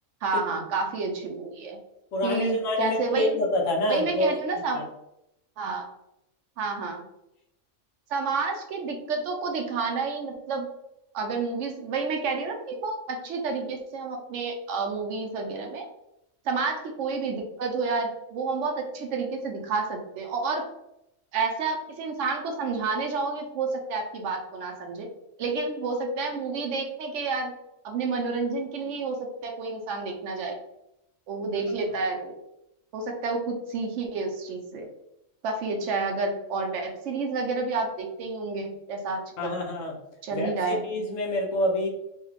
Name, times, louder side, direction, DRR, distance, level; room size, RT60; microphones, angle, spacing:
voice 1, 0.2-1.8 2.2-3.4 3.9-4.8 5.6-5.9 6.6-7.1 8.1-10.7 11.1-15.9 16.4-20.6 21.3-25.1 25.4-27.5 27.8-30.6 31.3-32.3 32.9-34.9 35.4-39.6 40.2-40.9, right 4 dB, 70° right, 3 dB, 1.0 m, -30 dB
voice 2, 2.1-4.3 39.4-39.9 40.3-41.9, left 1 dB, 80° left, 0 dB, 1.1 m, -27 dB
3.1 x 2.3 x 3.2 m, 0.84 s
omnidirectional pair, 1.3 m